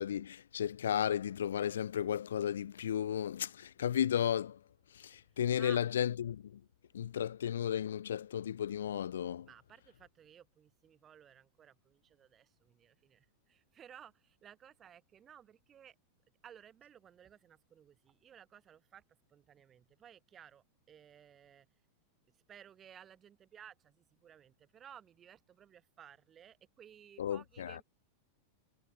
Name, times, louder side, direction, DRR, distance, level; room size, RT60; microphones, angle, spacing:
voice 1, 0.0-4.6 4.9-6.6 6.9-9.5 27.2-27.8, left 9 dB, 65° left, 0.3 m, -34 dB
voice 2, 9.5-15.9 16.4-19.0 19.3-21.7 22.3-27.8, right 9 dB, 25° right, 6.7 m, -57 dB
figure-of-eight pair, 90°, 0 cm